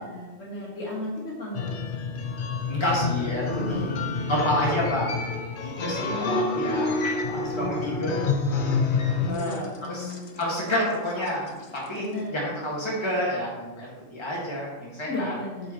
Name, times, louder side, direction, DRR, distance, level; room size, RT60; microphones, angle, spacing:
voice 1, 0.0-1.8 3.6-4.1 5.7-6.7 7.5-8.3 9.2-10.4 11.9-12.5 15.1-15.7, left 2 dB, 75° left, -5 dB, 2.4 m, -35 dB
sound 1, 1.5-11.9, left 4 dB, 50° left, 0.7 m, -28 dB
voice 2, 2.7-4.0 4.3-5.1 5.6-8.2 9.3-15.3, equal, 20° left, -5 dB, 1.8 m, -29 dB
8.2 x 5.6 x 3.0 m, 1.1 s
omnidirectional pair, 1.4 m